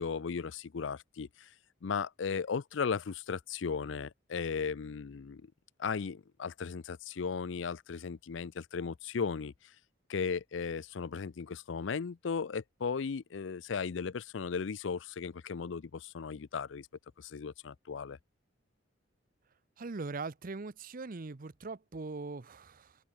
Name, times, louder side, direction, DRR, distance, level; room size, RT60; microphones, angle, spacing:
voice 1, 0.0-1.5 1.8-5.4 5.8-9.5 10.1-16.9 17.2-18.2, left 5 dB, 70° left, 0.5 m, -36 dB
voice 2, 19.8-23.0, right 3 dB, 45° right, 0.7 m, -41 dB
open air
head